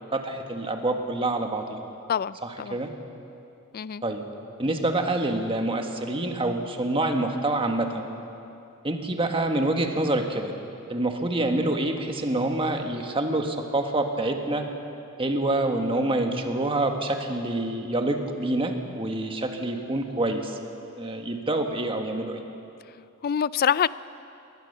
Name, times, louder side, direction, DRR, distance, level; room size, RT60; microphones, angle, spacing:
voice 1, 0.0-1.8 2.4-2.9 4.0-4.2 4.6-8.0 8.8-10.5 10.9-14.6 15.2-20.6 21.0-22.4, right 2 dB, 25° right, 4 dB, 1.6 m, -26 dB
voice 2, 2.1-2.8 3.7-4.0 23.2-23.9, left 8 dB, 45° left, 18 dB, 0.4 m, -25 dB
21.0 x 19.5 x 6.8 m, 2.7 s
head